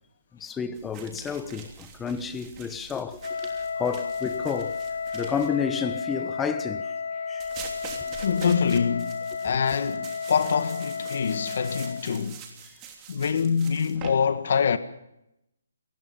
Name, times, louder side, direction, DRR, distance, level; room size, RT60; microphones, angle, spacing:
voice 1, 0.4-3.5 3.8-4.7 5.1-6.9 7.3-7.4, left 6 dB, 10° left, 1.1 m, -31 dB
sound 1, 0.8-5.5 7.4-14.1, right 7 dB, 20° right, 3.1 m, -45 dB
Wind instrument woodwind instrument, 3.2-12.1, left 5 dB, 70° left, 1.0 m, -32 dB
voice 2, 8.2-12.4 13.1-14.8, left 6 dB, 55° left, 1.7 m, -25 dB
27.5 x 20.0 x 5.4 m
hypercardioid pair, 165°, 0 cm